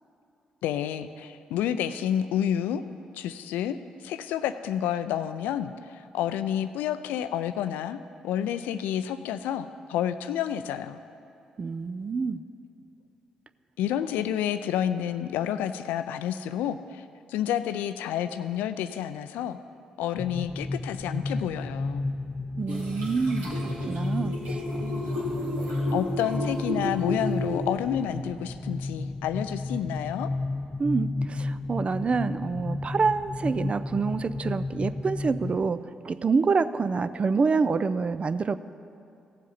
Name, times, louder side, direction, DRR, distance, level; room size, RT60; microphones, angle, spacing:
voice 1, 0.6-2.8 3.1-8.0 8.2-11.0 13.8-17.0 17.3-19.6 20.0-22.1 25.9-30.3, left 10 dB, 70° left, 12 dB, 0.4 m, -29 dB
voice 2, 11.6-12.4 22.6-24.6 30.8-38.6, right 4 dB, 40° right, 14 dB, 0.4 m, -27 dB
sound 1, 20.2-35.7, left 2 dB, 25° left, 0.6 m, -32 dB
sound 2, 22.7-28.0, equal, 75° right, 2.1 m, -33 dB
16.5 x 7.4 x 4.1 m, 2.7 s
hypercardioid pair, 40°, 3 cm